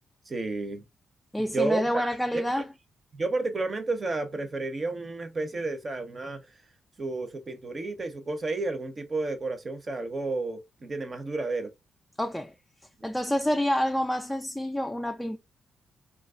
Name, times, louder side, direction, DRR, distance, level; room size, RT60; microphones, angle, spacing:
voice 1, 0.3-0.8 1.4-2.6 3.1-6.4 7.0-11.7, right 3 dB, 40° right, 0.6 m, -31 dB
voice 2, 1.3-2.6 12.2-12.5 13.0-15.4, equal, 10° left, 0.3 m, -28 dB
2.4 x 2.2 x 2.3 m
hypercardioid pair, 40°, 0 cm